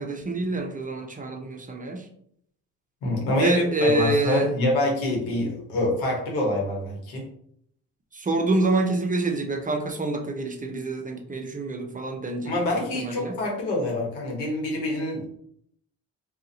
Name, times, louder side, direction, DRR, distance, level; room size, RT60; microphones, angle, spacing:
voice 1, 0.0-2.1 3.4-4.5 8.1-12.5 12.9-13.4, right 2 dB, 20° right, 4 dB, 0.6 m, -26 dB
voice 2, 3.0-7.2 12.4-15.3, left 1 dB, 90° left, -1 dB, 1.1 m, -26 dB
2.5 x 2.4 x 4.0 m, 0.68 s
supercardioid pair, 60°, 37 cm